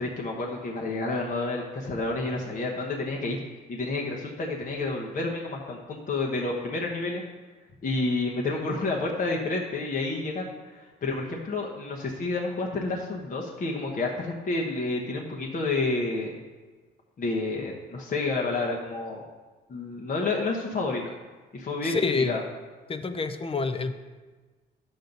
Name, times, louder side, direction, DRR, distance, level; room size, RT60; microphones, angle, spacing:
voice 1, 0.0-3.4 3.7-7.2 7.8-16.3 17.2-19.2 19.7-21.0 21.5-22.4, left 3 dB, 45° left, -1 dB, 1.1 m, -29 dB
voice 2, 21.8-22.4 22.9-23.9, left 4 dB, 30° left, 9 dB, 0.7 m, -27 dB
10.0 x 7.2 x 4.0 m, 1.3 s
cardioid pair, 90°, 20 cm